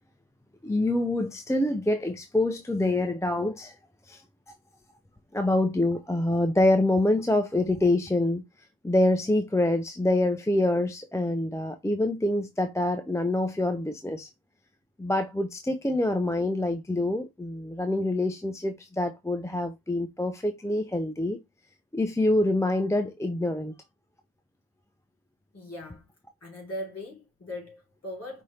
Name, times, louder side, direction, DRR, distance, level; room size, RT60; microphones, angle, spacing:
voice 1, 0.6-3.8 4.1-4.2 5.3-8.4 8.8-14.3 15.0-21.4 21.9-23.7, left 1 dB, 5° left, 0.5 m, -26 dB
voice 2, 25.5-26.0 26.4-28.4, left 1 dB, 35° left, 3.3 m, -39 dB
5.2 x 2.9 x 3.2 m
cardioid pair, 70°, 45 cm